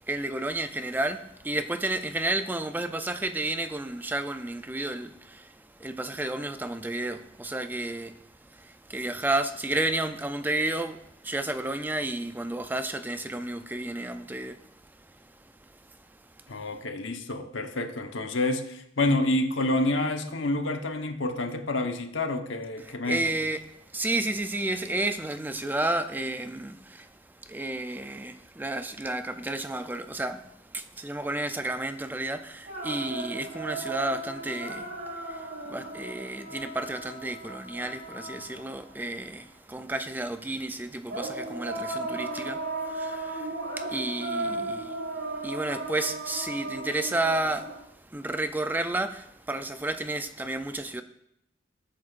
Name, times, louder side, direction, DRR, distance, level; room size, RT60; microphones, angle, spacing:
voice 1, 0.0-15.3 15.6-16.5 22.8-51.0, right 2 dB, 10° right, 0.4 m, -32 dB
voice 2, 16.5-23.3, left 2 dB, 90° left, 1.1 m, -28 dB
sound 1, 32.6-38.9 41.1-47.8, right 2 dB, 65° right, 3.7 m, -36 dB
20.0 x 8.5 x 2.5 m
head